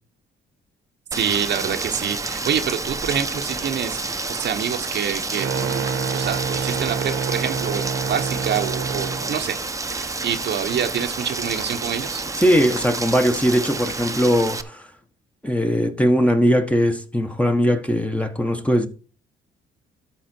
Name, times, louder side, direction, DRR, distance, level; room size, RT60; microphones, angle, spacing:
Rain, 1.1-14.6, right 3 dB, 15° right, 0.8 m, -29 dB
voice 1, 1.1-9.6 9.9-12.2, right 8 dB, 60° right, 1.0 m, -27 dB
sound 1, 5.4-9.3, right 6 dB, 85° right, 1.4 m, -27 dB
voice 2, 12.4-14.9 15.4-18.9, equal, 5° left, 1.1 m, -20 dB
13.0 x 4.9 x 4.4 m
cardioid pair, 90°, 20 cm